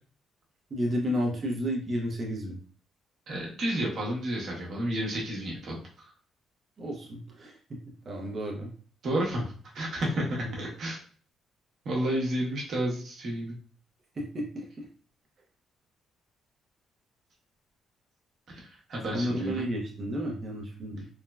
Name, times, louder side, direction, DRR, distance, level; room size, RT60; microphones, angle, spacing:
voice 1, 0.7-2.6 6.8-7.8 8.1-8.7 10.3-10.6 14.2-14.9 19.1-21.1, equal, 25° right, -2 dB, 0.4 m, -32 dB
voice 2, 3.3-6.1 9.0-11.0 11.8-13.5 18.5-19.7, right 1 dB, 50° right, -3 dB, 0.8 m, -31 dB
3.1 x 2.1 x 2.2 m, 0.43 s
cardioid pair, 170°, 0 cm